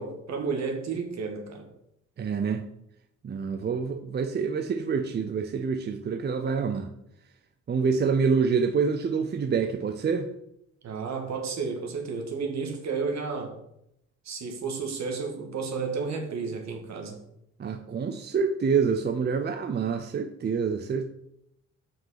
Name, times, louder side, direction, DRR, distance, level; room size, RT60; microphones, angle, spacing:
voice 1, 0.0-1.7 10.8-13.6 14.3-17.2, right 4 dB, 65° right, 3 dB, 1.8 m, -32 dB
voice 2, 2.2-2.6 3.2-6.9 7.7-10.3 17.6-21.1, right 5 dB, 35° right, 7 dB, 0.6 m, -27 dB
5.9 x 5.2 x 5.7 m, 0.78 s
cardioid pair, 90°, 30 cm